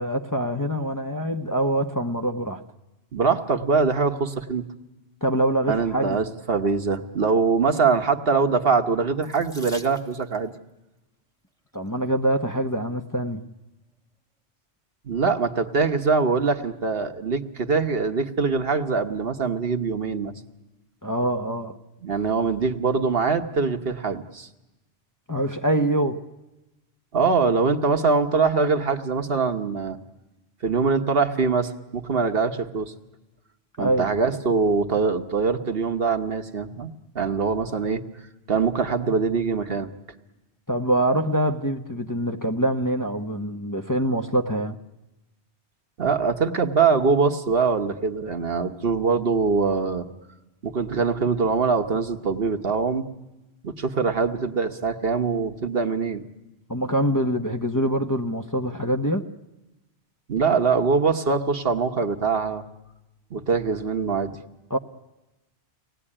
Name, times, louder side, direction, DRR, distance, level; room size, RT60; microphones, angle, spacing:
voice 1, 0.0-2.6 5.2-6.2 11.7-13.4 21.0-21.8 25.3-26.2 33.8-34.1 40.7-44.8 56.7-59.3 64.7-64.8, right 1 dB, 20° left, 0.9 m, -24 dB
voice 2, 3.1-4.6 5.7-10.5 15.0-20.3 22.0-24.5 27.1-30.0 30.6-32.9 33.8-38.0 38.5-39.9 46.0-50.1 50.6-53.1 53.6-56.2 60.3-62.6 63.3-64.3, right 4 dB, 60° right, 1.4 m, -23 dB
Water tap faucet / Sink (filling or washing), 9.2-10.5 11.5-11.9 12.6-12.7 13.0-13.1, equal, 5° left, 1.5 m, -44 dB
24.5 x 18.5 x 9.9 m
omnidirectional pair, 1.1 m